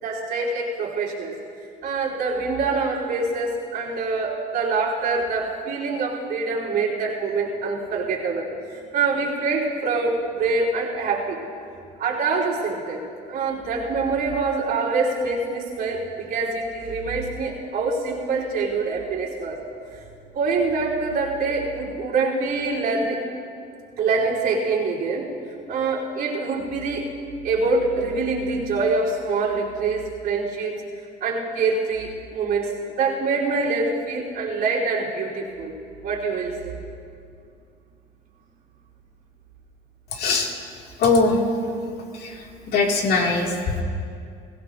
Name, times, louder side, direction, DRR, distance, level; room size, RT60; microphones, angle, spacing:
voice 1, 0.0-1.3 1.8-11.4 12.0-13.0 13.3-16.0 16.3-19.6 20.3-23.2 24.0-25.3 25.7-27.1 27.4-30.8 31.2-32.7 33.0-35.7 36.0-36.7, right 4 dB, 70° right, -5 dB, 3.5 m, -25 dB
voice 2, 40.2-40.5 41.0-41.4 42.2-42.3 42.7-43.5, left 3 dB, 70° left, 0 dB, 2.2 m, -20 dB
22.5 x 15.5 x 2.6 m, 2.4 s
cardioid pair, 110°, 17 cm